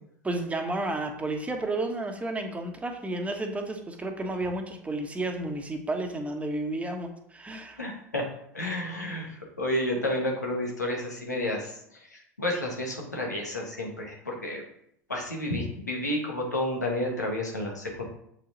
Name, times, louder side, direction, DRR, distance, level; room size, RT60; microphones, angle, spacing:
voice 1, 0.2-7.8, right 2 dB, 15° right, 4 dB, 1.3 m, -32 dB
voice 2, 7.8-8.3 8.5-11.7 12.4-14.6 15.1-18.0, left 1 dB, 85° left, -1 dB, 1.9 m, -30 dB
7.6 x 5.6 x 4.1 m, 0.72 s
figure-of-eight pair, 80°, 9 cm